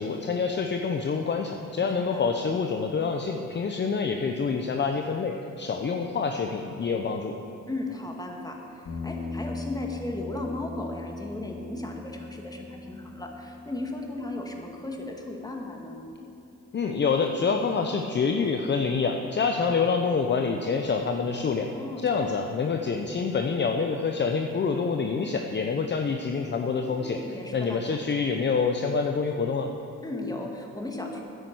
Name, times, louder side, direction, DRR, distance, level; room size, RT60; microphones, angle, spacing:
voice 1, 0.0-7.3 16.7-21.7 22.0-27.2 27.5-29.7, left 5 dB, 35° left, 4 dB, 0.9 m, -27 dB
voice 2, 1.8-2.4 7.7-16.0 21.6-22.4 26.8-27.8 30.0-31.2, left 2 dB, 10° left, 1 dB, 2.0 m, -36 dB
sound 1, 8.9-17.2, left 3 dB, 65° left, 2.2 m, -40 dB
10.0 x 9.9 x 8.0 m, 2.9 s
cardioid pair, 90°, 30 cm